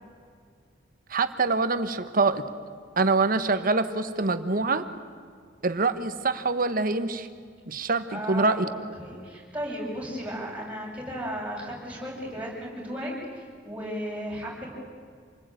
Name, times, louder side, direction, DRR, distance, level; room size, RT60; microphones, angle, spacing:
voice 1, 1.1-2.4 3.0-4.9 5.6-7.3 7.7-8.7, right 3 dB, 50° right, 10 dB, 1.4 m, -25 dB
voice 2, 8.1-14.7, equal, 10° right, -4 dB, 7.5 m, -35 dB
27.5 x 20.5 x 9.2 m, 2.1 s
head